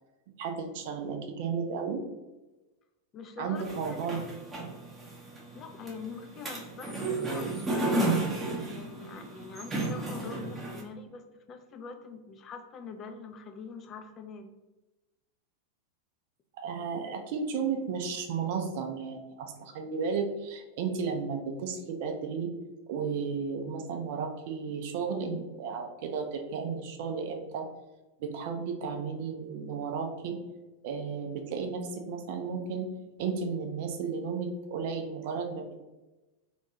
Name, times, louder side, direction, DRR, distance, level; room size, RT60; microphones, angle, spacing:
voice 1, 0.4-2.0 3.4-4.2 16.6-22.5 22.9-27.7 28.2-30.4 30.8-32.9 33.2-35.9, right 5 dB, 50° right, 4 dB, 0.4 m, -33 dB
voice 2, 3.1-3.6 3.9-4.1 5.5-14.5, left 5 dB, 30° left, 6 dB, 0.3 m, -44 dB
sound 1, 3.6-10.8, right 2 dB, 15° right, 0.7 m, -33 dB
2.5 x 2.2 x 2.8 m, 1.1 s
figure-of-eight pair, 90°, 0 cm